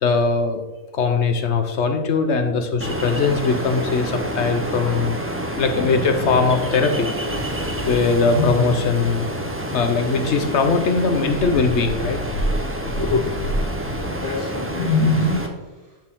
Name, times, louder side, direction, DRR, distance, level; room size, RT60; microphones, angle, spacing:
voice 1, 0.0-0.6 0.9-5.2 5.6-7.1 7.4-9.3 9.7-12.2 13.0-13.3, left 4 dB, 60° left, 7 dB, 1.0 m, -20 dB
Ocean, 2.8-15.5, right 1 dB, 15° right, 0.6 m, -28 dB
voice 2, 5.3-6.3 12.9-13.2 14.0-16.0, left 2 dB, 75° right, -9 dB, 2.7 m, -34 dB
sound 1, 7.3-9.7 10.0-10.1 11.2-14.3 14.6-15.4, left 1 dB, 85° left, 1.5 m, -25 dB
11.0 x 4.6 x 3.7 m, 1.2 s
omnidirectional pair, 1.4 m